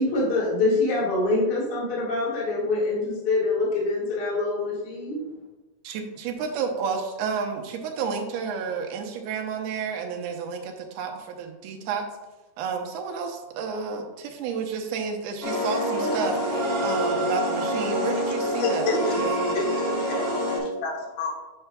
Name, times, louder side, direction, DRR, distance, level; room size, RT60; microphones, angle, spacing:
voice 1, 0.0-5.2, left 2 dB, 40° left, -6 dB, 1.6 m, -25 dB
voice 2, 5.8-12.0 12.6-18.9 19.2-19.5, right 6 dB, 90° right, 3 dB, 2.7 m, -31 dB
sound 1, 15.4-20.6, equal, 20° right, 0.5 m, -26 dB
voice 3, 18.6-19.2 19.5-20.9 21.2-21.3, left 2 dB, 85° left, 0 dB, 2.9 m, -29 dB
9.4 x 5.7 x 2.2 m, 1.1 s
omnidirectional pair, 4.2 m